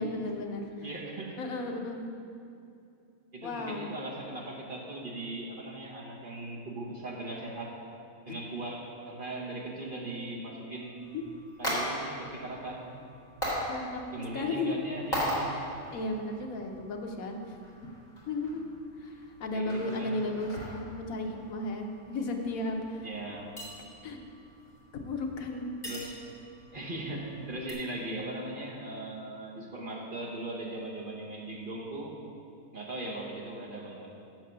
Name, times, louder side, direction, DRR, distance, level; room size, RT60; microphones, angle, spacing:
voice 1, 0.0-0.7 1.4-2.1 3.4-3.9 8.3-8.4 11.1-11.2 13.7-14.0 14.3-14.8 15.9-17.6 18.3-18.6 19.0-19.1 19.4-23.1 24.0-24.2 24.9-25.7, left 2 dB, 80° left, 3 dB, 1.3 m, -34 dB
voice 2, 0.8-1.4 3.3-7.8 8.3-11.1 11.6-12.9 14.1-15.7 19.5-20.2 23.0-23.5 25.8-26.2 26.7-32.1 32.7-34.2, right 2 dB, 40° right, -3 dB, 1.2 m, -39 dB
sound 1, 11.0-27.7, equal, 15° left, 2.3 m, -40 dB
7.7 x 6.6 x 6.7 m, 2.5 s
omnidirectional pair, 1.5 m